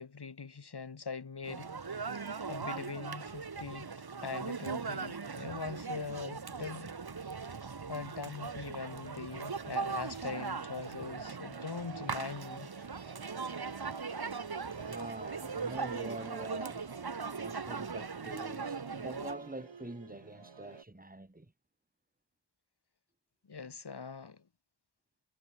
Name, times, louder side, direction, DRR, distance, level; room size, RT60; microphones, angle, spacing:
voice 1, 0.0-1.9 2.1-3.9 4.2-7.0 7.9-12.7 23.5-24.4, left 5 dB, 60° left, 2.7 m, -42 dB
sound 1, 1.4-19.3, right 5 dB, 55° right, 2.4 m, -39 dB
Musical instrument, 9.3-20.8, right 5 dB, 80° right, 5.8 m, -50 dB
voice 2, 14.8-16.9 17.4-21.5, right 2 dB, 20° right, 5.4 m, -44 dB
cardioid pair, 50°, 45 cm